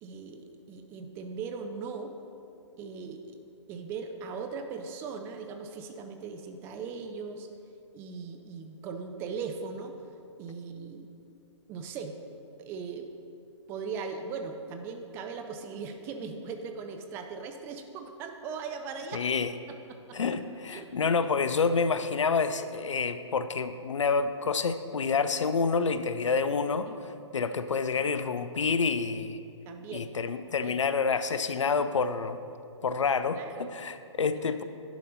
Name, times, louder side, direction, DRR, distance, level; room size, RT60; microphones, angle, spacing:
voice 1, 0.0-2.2 2.8-3.4 3.7-7.5 7.9-10.0 10.4-11.1 11.7-12.1 12.6-13.1 13.7-19.2 19.9-20.2 20.7-20.9 26.9-27.0 27.4-27.6 29.7-30.2 30.5-30.8 33.3-33.7 34.3-34.6, right 5 dB, 15° right, 6 dB, 0.3 m, -39 dB
voice 2, 19.1-19.5 20.1-29.4 29.9-32.4 32.8-34.6, left 5 dB, 75° left, 11 dB, 0.5 m, -28 dB
10.5 x 4.1 x 5.4 m, 2.6 s
figure-of-eight pair, 130°, 16 cm